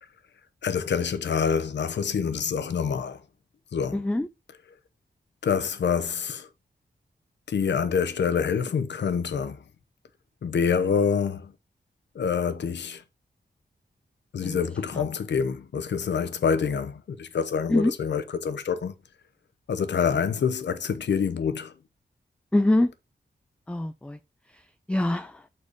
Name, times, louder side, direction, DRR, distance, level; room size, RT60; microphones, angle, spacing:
voice 1, 0.6-3.2 3.7-4.0 5.4-6.5 7.5-9.6 10.4-11.5 12.1-13.0 14.3-18.9 19.7-21.7, left 6 dB, 85° left, 0.8 m, -26 dB
voice 2, 3.9-4.3 14.4-14.6 14.9-15.1 17.7-17.9 22.5-22.9 23.7-24.2 24.9-25.4, left 1 dB, 5° left, 0.3 m, -24 dB
6.6 x 4.3 x 4.9 m
wide cardioid pair, 110°, 18 cm